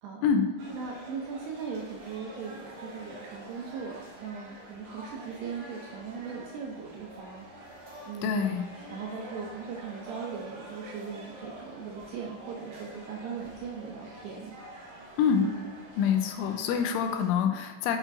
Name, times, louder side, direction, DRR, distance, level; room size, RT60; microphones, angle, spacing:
sound 1, 0.6-17.3, right 1 dB, 65° right, 2.1 m, -47 dB
voice 1, 0.7-7.7 8.1-8.5 8.9-14.5 15.4-16.0, right 6 dB, 80° right, -1 dB, 2.5 m, -39 dB
voice 2, 8.2-8.6 15.2-15.4 16.0-18.0, left 7 dB, 90° left, 5 dB, 3.1 m, -26 dB
7.5 x 6.3 x 2.6 m, 1.3 s
omnidirectional pair, 5.5 m